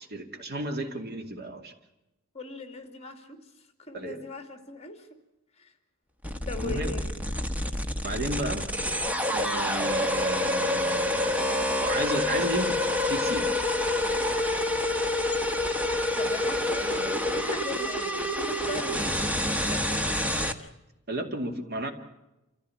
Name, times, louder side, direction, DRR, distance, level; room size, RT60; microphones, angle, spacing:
voice 1, 0.0-1.7 3.9-4.2 6.6-6.9 8.0-8.7 9.3-12.8 13.1-13.5 21.1-21.9, right 1 dB, 50° right, 5 dB, 2.5 m, -33 dB
voice 2, 2.3-3.4 3.8-5.2 5.6-5.7 6.5-7.2 16.2-20.7, left 3 dB, 30° left, 7 dB, 2.6 m, -40 dB
sound 1, 6.2-20.5, left 1 dB, 5° right, 1.2 m, -27 dB
27.5 x 15.0 x 8.7 m, 0.96 s
head